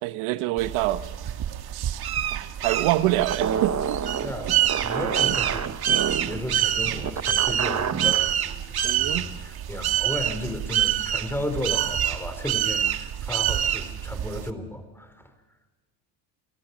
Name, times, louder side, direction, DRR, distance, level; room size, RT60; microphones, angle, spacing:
voice 1, 0.0-1.0 1.7-2.0 2.3-4.0 8.8-9.3, right 15 dB, 80° right, 12 dB, 1.1 m, -26 dB
sound 1, 0.6-14.5, right 11 dB, 50° right, 1.5 m, -27 dB
sound 2, 3.2-8.3, right 7 dB, 35° right, 1.2 m, -29 dB
voice 2, 4.2-5.7 6.3-15.3, left 1 dB, 5° left, 9 dB, 4.8 m, -34 dB
29.5 x 17.5 x 6.2 m, 1.2 s
supercardioid pair, 85°, 48 cm